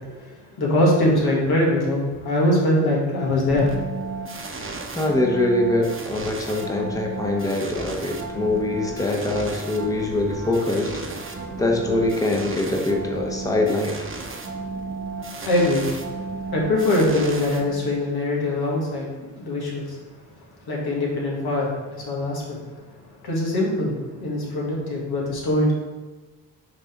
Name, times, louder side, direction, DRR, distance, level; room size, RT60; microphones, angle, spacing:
voice 1, 0.6-3.7 15.5-15.9 16.5-20.0 20.7-22.6 23.2-25.7, left 1 dB, 80° left, -3 dB, 1.8 m, -22 dB
sound 1, 3.5-18.1, right 3 dB, 35° right, 0.9 m, -34 dB
voice 2, 4.7-11.3 11.6-14.1, left 2 dB, 10° left, 1 dB, 0.9 m, -24 dB
6.0 x 3.3 x 5.1 m, 1.2 s
cardioid pair, 80°, 37 cm